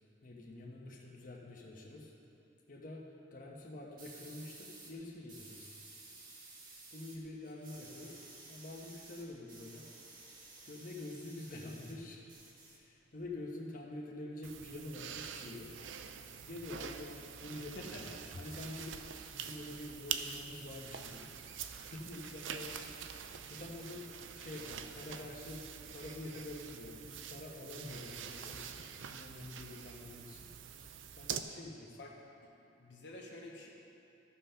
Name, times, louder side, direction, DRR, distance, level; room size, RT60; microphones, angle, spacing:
voice 1, 0.2-2.1 2.7-3.0 3.3-5.8 6.9-8.2 8.5-9.9 10.6-12.2 12.7-15.8 16.4-18.1 18.4-21.3 21.7-22.9 23.3-30.5 31.2-32.0, left 2 dB, 45° left, -2 dB, 1.2 m, -47 dB
sound 1, 4.0-4.9 5.3-7.2 7.4-12.0 12.3-13.3, right 3 dB, 45° right, 1.7 m, -54 dB
sound 2, 14.4-31.4, right 8 dB, 75° right, 0.5 m, -45 dB
voice 2, 17.7-18.4 32.0-32.1 32.8-33.7, left 1 dB, 65° left, -2 dB, 1.1 m, -48 dB
14.0 x 5.7 x 5.6 m, 2.8 s
head